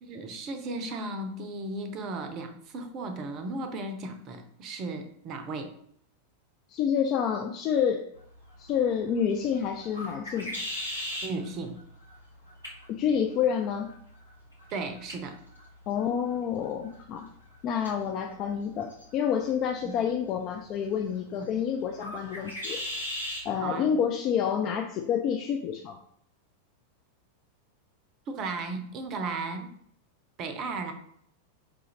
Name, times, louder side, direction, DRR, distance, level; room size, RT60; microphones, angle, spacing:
voice 1, 0.1-5.7 11.2-11.8 14.7-15.4 19.8-19.9 21.4-21.5 23.6-23.9 28.3-29.7 30.4-30.9, right 3 dB, 35° right, 7 dB, 0.5 m, -35 dB
voice 2, 6.7-8.0 8.6-10.5 12.9-13.9 15.9-17.3 17.6-22.8 23.4-26.0, left 8 dB, 35° left, 3 dB, 0.3 m, -28 dB
sound 1, 8.1-23.5, left 1 dB, 85° left, 1.0 m, -42 dB
4.7 x 2.5 x 2.9 m, 0.66 s
figure-of-eight pair, 90°, 0 cm